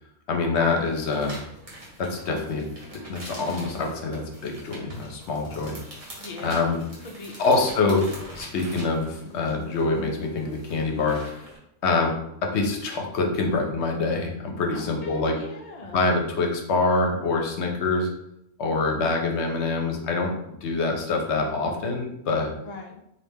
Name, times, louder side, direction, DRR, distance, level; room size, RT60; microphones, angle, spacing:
voice 1, 0.3-1.4 2.0-2.7 3.1-5.7 6.4-6.8 7.4-8.0 8.4-11.4 11.8-12.2 12.4-15.4 15.9-18.1 18.6-22.5, left 3 dB, 70° left, 2 dB, 0.9 m, -25 dB
sound 1, 0.6-11.6, equal, 30° right, 1.0 m, -44 dB
voice 2, 6.2-7.7 14.7-16.0 22.6-23.0, left 2 dB, 50° left, 2 dB, 0.5 m, -41 dB
3.2 x 2.6 x 3.4 m, 0.78 s
omnidirectional pair, 1.2 m